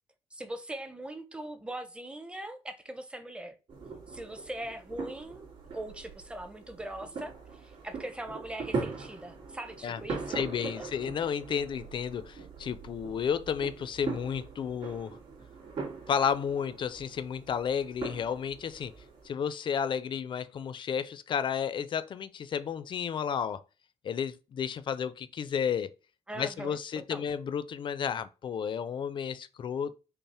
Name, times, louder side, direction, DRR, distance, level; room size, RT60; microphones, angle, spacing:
voice 1, 0.3-3.6 4.1-5.5 5.7-10.4 10.8-10.9 26.3-26.8 27.1-27.3, right 1 dB, 10° right, 0.6 m, -41 dB
sound 1, 3.7-19.3, right 4 dB, 50° right, 2.6 m, -41 dB
voice 2, 10.3-15.2 16.1-18.9 19.2-23.6 24.0-25.9 26.4-29.9, left 7 dB, 45° left, 0.4 m, -32 dB
5.5 x 2.0 x 4.2 m
cardioid pair, 140°, 12 cm